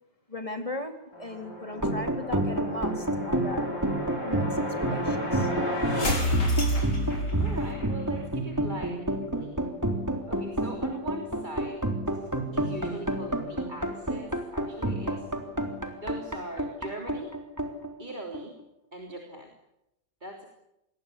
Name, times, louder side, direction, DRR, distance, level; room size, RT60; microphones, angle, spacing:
voice 1, 0.3-3.7 4.2-5.5, left 1 dB, 20° left, 5 dB, 3.9 m, -37 dB
sound 1, 1.1-7.9, equal, 65° left, 5.9 m, -30 dB
sound 2, 1.7-18.6, right 1 dB, 10° right, 3.7 m, -30 dB
voice 2, 7.4-9.7 10.3-12.2 12.5-15.3 15.9-17.3 18.0-18.6 18.9-19.5 20.2-20.5, right 1 dB, 25° right, 1 dB, 3.5 m, -41 dB
27.5 x 21.5 x 8.5 m, 0.86 s
omnidirectional pair, 1.9 m